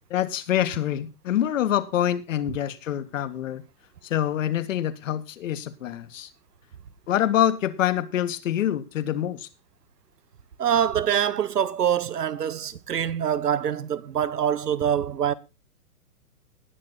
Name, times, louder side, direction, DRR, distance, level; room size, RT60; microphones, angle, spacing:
voice 1, 0.1-3.6 4.0-6.3 7.1-9.5, left 11 dB, 55° left, 1.7 m, -26 dB
voice 2, 10.6-15.3, right 9 dB, 90° right, 1.2 m, -25 dB
19.5 x 6.7 x 4.1 m
hypercardioid pair, 145°, 46 cm